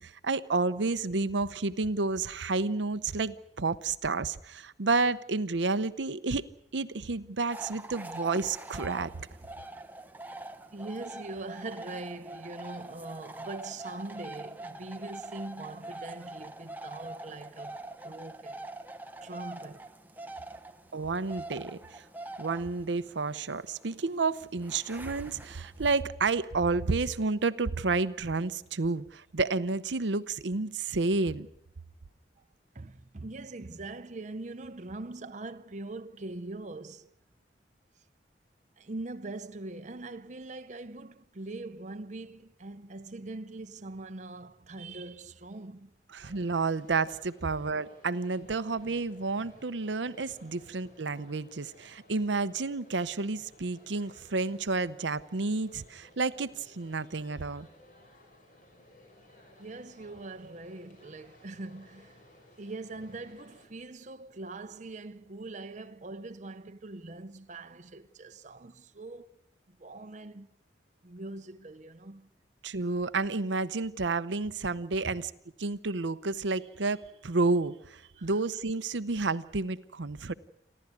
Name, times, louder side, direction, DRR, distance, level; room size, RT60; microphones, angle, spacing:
voice 1, 0.0-6.4 6.7-9.1 20.9-22.0 22.4-31.5 46.1-57.7 72.6-75.3 75.6-80.3, right 3 dB, 75° right, 0.8 m, -30 dB
sound 1, 7.5-26.0, right 2 dB, 10° right, 1.0 m, -44 dB
voice 2, 10.7-18.7 19.2-19.9 32.7-37.1 38.8-45.9 59.6-62.2 62.6-69.4 69.7-70.5 71.0-72.3 75.0-75.2 78.2-78.4, right 2 dB, 40° right, 0.8 m, -42 dB
sound 2, 46.2-63.7, left 1 dB, 45° left, 5.5 m, -58 dB
29.5 x 12.0 x 9.6 m
head